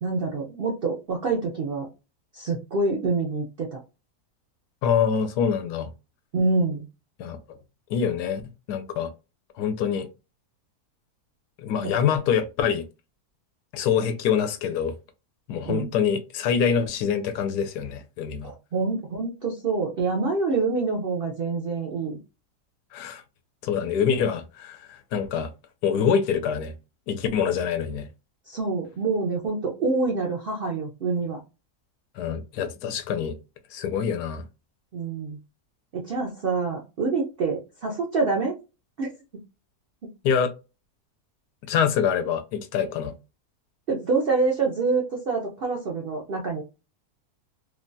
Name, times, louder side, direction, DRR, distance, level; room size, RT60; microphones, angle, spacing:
voice 1, 0.0-1.9 2.3-3.8 6.3-6.9 11.8-11.9 15.7-15.9 18.4-22.2 28.5-31.4 34.9-35.4 35.9-38.6 39.0-39.1 40.0-40.1 43.9-46.6, right 3 dB, 70° right, 0.5 m, -26 dB
voice 2, 4.8-5.9 7.2-7.4 7.9-8.4 8.7-9.1 9.6-10.1 11.6-12.8 13.7-14.9 15.5-18.5 22.9-23.2 23.6-25.5 25.8-26.7 27.1-28.1 32.2-33.3 33.7-34.4 40.2-40.5 41.7-43.1, left 7 dB, 85° left, 1.1 m, -25 dB
3.2 x 2.2 x 2.6 m
omnidirectional pair, 1.7 m